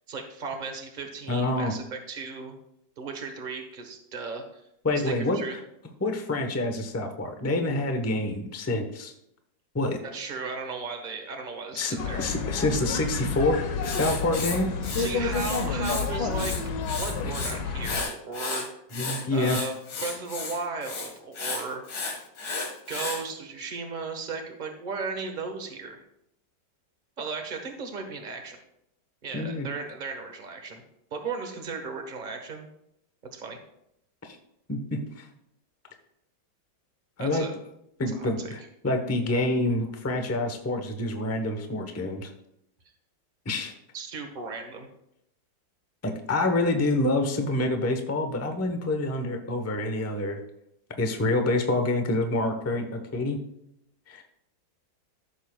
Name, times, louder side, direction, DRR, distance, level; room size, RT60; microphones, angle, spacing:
voice 1, 0.0-2.5 3.0-4.6 5.0-5.5 10.0-12.2 14.9-18.8 19.3-19.7 20.0-21.8 22.9-26.0 27.2-28.6 29.2-30.8 31.1-32.7 33.3-33.6 37.2-37.5 38.1-38.5 43.9-44.9, right 4 dB, 30° right, 4 dB, 1.2 m, -36 dB
voice 2, 1.3-1.7 4.8-5.4 6.0-9.1 9.7-10.0 11.7-14.7 17.2-17.3 18.9-19.6 29.3-29.7 34.2-34.4 34.7-35.3 37.2-37.5 38.0-42.3 43.4-43.7 46.0-50.4 51.0-53.4 54.1-54.2, left 2 dB, 15° left, 5 dB, 0.5 m, -27 dB
sound 1, 12.0-18.0, left 4 dB, 70° left, 1.5 m, -30 dB
Writing, 13.8-16.1 16.3-17.5 17.8-23.2, left 4 dB, 85° left, 2.4 m, -33 dB
14.5 x 7.2 x 2.3 m, 0.79 s
omnidirectional pair, 2.1 m